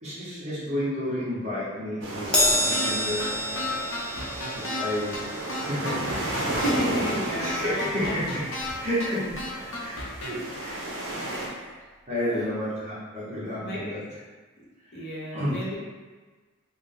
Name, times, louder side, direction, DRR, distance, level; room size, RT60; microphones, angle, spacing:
voice 1, 0.0-3.6 4.0-4.2 4.5-6.5 7.4-8.4 8.8-9.2 9.6-9.9 10.3-10.7 11.2-11.5 12.1-14.0 14.9-15.0 15.3-15.6, equal, 30° right, -10 dB, 0.9 m, -31 dB
sound 1, 2.0-11.5, right 1 dB, 60° right, 0.6 m, -34 dB
Crash cymbal, 2.3-9.0 9.3-9.5 10.6-10.7, left 1 dB, 5° left, 0.5 m, -30 dB
sound 2, 2.7-2.9 3.2-3.3 3.6-4.8 5.1-5.2 5.5-6.8 7.1-7.2 7.4-8.7 9.0-9.1 9.4-10.3, left 2 dB, 80° left, 0.8 m, -33 dB
voice 2, 6.5-8.2 8.9-9.0 11.2-11.8 12.1-12.5 13.5-13.9 14.6-14.7 14.9-15.8, equal, 55° left, -5 dB, 0.8 m, -33 dB
3.5 x 2.1 x 3.7 m, 1.3 s
head